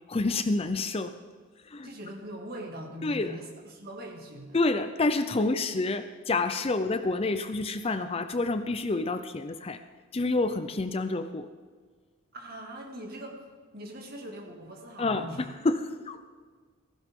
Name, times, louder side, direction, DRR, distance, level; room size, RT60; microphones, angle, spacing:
voice 1, 0.1-1.1 1.7-1.9 3.0-3.4 4.5-9.8 10.1-11.5 15.0-16.2, left 3 dB, 30° left, 10 dB, 0.5 m, -28 dB
voice 2, 1.8-4.6 12.3-13.4 13.7-15.4, right 1 dB, 45° right, 1 dB, 2.2 m, -41 dB
16.0 x 15.5 x 3.7 m, 1.5 s
head